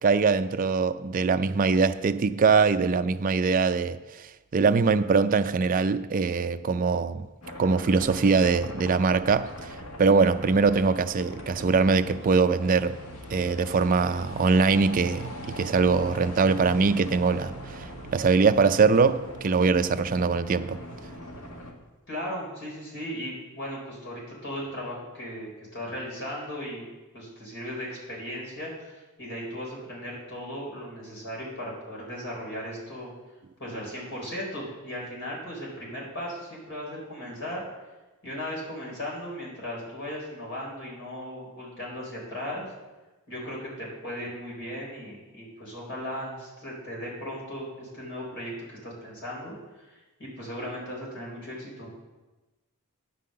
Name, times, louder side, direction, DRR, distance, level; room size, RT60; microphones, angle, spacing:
voice 1, 0.0-4.0 4.5-7.3 7.6-9.5 10.0-13.0 13.3-20.8, right 4 dB, 40° right, 0.4 m, -22 dB
sound 1, 7.4-21.7, equal, 80° left, 1.5 m, -41 dB
voice 2, 22.1-26.9 27.1-33.1 33.6-37.6 38.2-42.7 43.3-49.6 49.9-51.9, equal, 55° left, 4.2 m, -37 dB
9.9 x 5.6 x 7.6 m
head